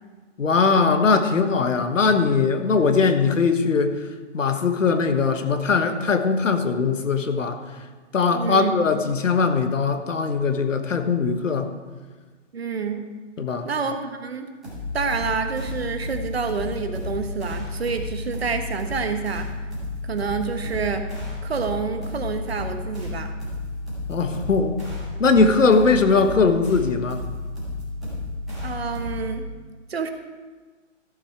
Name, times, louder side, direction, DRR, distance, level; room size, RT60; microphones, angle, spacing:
voice 1, 0.4-4.0 4.3-7.6 8.1-11.7 13.4-13.7 24.1-24.8 25.2-27.2, left 4 dB, 85° left, 8 dB, 1.4 m, -20 dB
voice 2, 8.3-8.7 12.5-13.0 13.6-14.5 14.9-19.5 20.1-21.1 21.4-23.3 28.6-29.5 29.9-30.1, right 5 dB, 55° right, 7 dB, 1.2 m, -28 dB
sound 1, 14.6-29.4, left 2 dB, ahead, 0.8 m, -32 dB
14.5 x 7.9 x 4.6 m, 1.4 s
hypercardioid pair, 175°, 38 cm